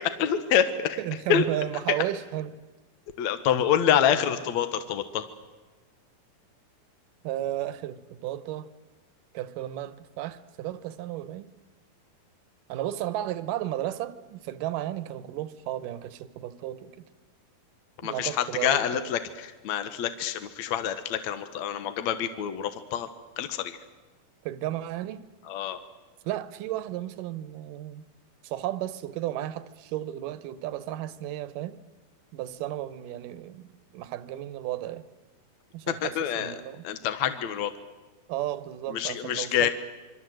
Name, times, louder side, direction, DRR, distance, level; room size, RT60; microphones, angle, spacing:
voice 1, 0.2-1.0 1.3-1.4 3.2-5.3 18.0-23.1 23.4-23.8 25.5-25.8 36.0-36.6 36.8-37.7 38.9-39.7, left 9 dB, 65° left, 9 dB, 2.0 m, -26 dB
voice 2, 1.0-2.5 7.2-8.7 9.3-11.5 12.7-17.0 18.0-19.1 24.5-25.3 26.2-28.0 28.4-31.8 32.3-35.0 35.7-36.8 38.3-39.7, right 13 dB, 70° right, 14 dB, 2.4 m, -33 dB
26.5 x 24.5 x 7.8 m, 1.3 s
omnidirectional pair, 4.2 m